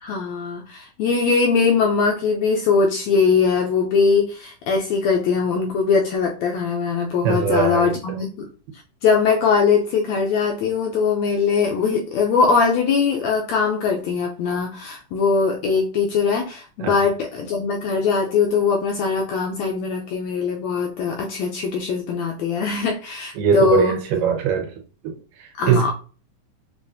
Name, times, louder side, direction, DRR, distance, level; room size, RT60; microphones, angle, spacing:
voice 1, 0.0-8.5 9.0-24.0 25.6-25.9, left 5 dB, 80° left, 1.6 m, -21 dB
voice 2, 7.0-8.2 16.8-16.9 23.4-25.9, right 6 dB, 85° right, 2.6 m, -22 dB
6.9 x 2.4 x 2.6 m
omnidirectional pair, 3.7 m